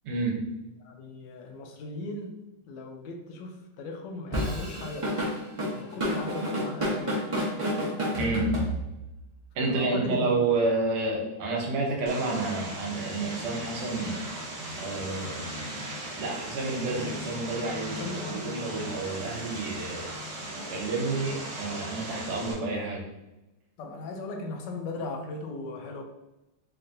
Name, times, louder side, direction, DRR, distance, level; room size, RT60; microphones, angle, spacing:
voice 1, 0.0-0.4 8.2-8.5 9.6-14.3 14.8-15.7 16.2-20.1 20.7-23.1, right 3 dB, 85° right, -1 dB, 1.8 m, -30 dB
voice 2, 0.8-2.4 2.7-5.4 5.7-7.3 9.6-10.3 18.0-18.5 23.8-26.0, left 2 dB, 75° left, 4 dB, 1.0 m, -37 dB
Drum kit / Drum, 4.3-9.1, equal, 30° right, 0.6 m, -29 dB
Vehicle, 12.1-22.5, right 1 dB, 55° right, 1.2 m, -37 dB
4.4 x 2.9 x 2.6 m, 0.97 s
omnidirectional pair, 2.3 m